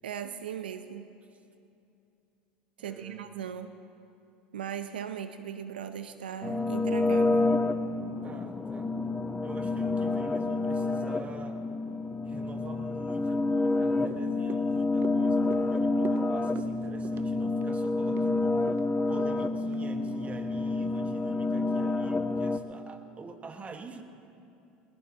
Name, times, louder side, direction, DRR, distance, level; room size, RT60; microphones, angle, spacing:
voice 1, 0.0-1.1 2.8-3.8 4.5-7.5, right 8 dB, 90° right, 10 dB, 0.6 m, -38 dB
voice 2, 2.8-3.2 8.2-8.9 9.4-11.7 12.3-18.6 19.1-24.0, right 4 dB, 25° right, 6 dB, 1.5 m, -46 dB
sound 1, 6.4-22.6, left 2 dB, 15° left, 0.9 m, -28 dB
sound 2, 13.9-20.4 20.8-20.9, right 9 dB, 45° right, 0.6 m, -45 dB
20.5 x 20.5 x 2.9 m, 2.7 s
hypercardioid pair, 85°, 5 cm